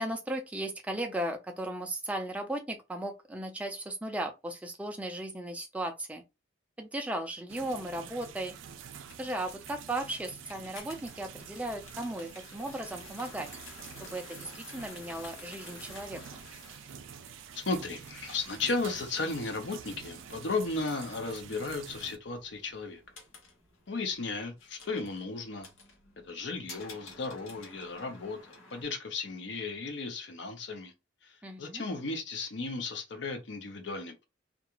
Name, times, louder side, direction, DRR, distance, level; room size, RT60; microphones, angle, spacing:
voice 1, 0.0-6.2 6.8-8.5 9.2-13.5 14.0-16.2 31.4-31.8, right 1 dB, 5° right, 0.3 m, -36 dB
sound 1, 7.5-22.2, right 8 dB, 75° right, 0.4 m, -47 dB
sound 2, 8.9-28.8, left 3 dB, 90° left, 1.0 m, -52 dB
voice 2, 17.5-23.0 23.9-25.7 26.2-30.9 31.2-34.2, left 3 dB, 65° left, 0.6 m, -35 dB
2.4 x 2.4 x 2.9 m
head